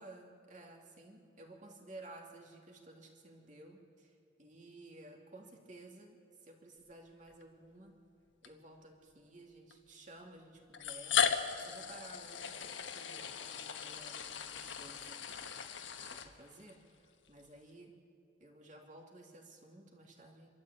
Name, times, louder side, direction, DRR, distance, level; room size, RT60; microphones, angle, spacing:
voice 1, 0.0-4.1 4.4-7.9 8.4-15.5 16.0-16.8 17.3-17.9 18.4-20.5, right 2 dB, 45° right, 1 dB, 2.9 m, -55 dB
sound 1, 7.3-7.4 8.4-8.5 9.7-9.8 10.7-16.7, left 7 dB, 80° left, 1.3 m, -37 dB
26.0 x 13.0 x 8.7 m, 2.7 s
head